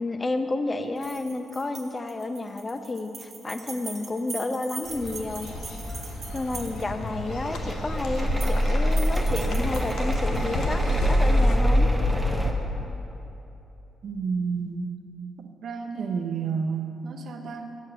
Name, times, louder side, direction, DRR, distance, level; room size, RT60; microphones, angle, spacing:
voice 1, 0.0-5.5 6.3-11.9, left 2 dB, 30° left, 8 dB, 0.5 m, -31 dB
sound 1, 1.0-7.1 8.2-8.6 8.9-10.4, right 4 dB, 55° right, 1.1 m, -41 dB
sound 2, 4.8-11.6, left 1 dB, 85° left, 0.7 m, -34 dB
sound 3, 5.5-12.5, equal, 5° right, 0.8 m, -25 dB
voice 2, 14.0-15.0 15.4-17.8, right 5 dB, 70° right, 4 dB, 0.5 m, -30 dB
6.2 x 5.7 x 6.6 m, 2.9 s
cardioid pair, 70°, 0 cm